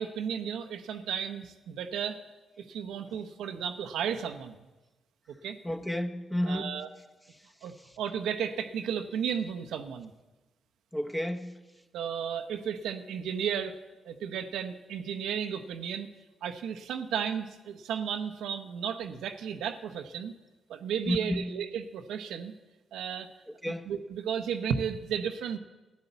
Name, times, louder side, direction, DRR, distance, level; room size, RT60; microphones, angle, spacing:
voice 1, 0.0-2.2 2.6-4.6 5.4-5.6 6.4-6.9 7.6-10.1 11.9-13.8 14.0-16.1 16.4-20.3 20.7-22.5 22.9-23.3 23.9-25.6, right 8 dB, 85° right, 0.8 m, -34 dB
voice 2, 5.6-6.7 10.9-11.5 21.0-21.5 23.6-23.9, left 1 dB, 10° left, 1.3 m, -31 dB
12.5 x 10.5 x 8.0 m
supercardioid pair, 55°, 0 cm